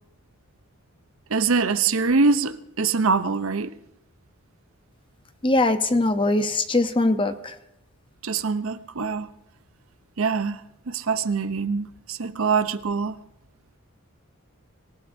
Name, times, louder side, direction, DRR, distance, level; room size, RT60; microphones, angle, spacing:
voice 1, 1.3-3.7 8.2-9.3 10.2-10.6 10.9-13.1, right 4 dB, 75° right, 0.7 m, -24 dB
voice 2, 5.4-7.6, left 2 dB, 25° left, 0.7 m, -21 dB
25.5 x 15.5 x 2.7 m
head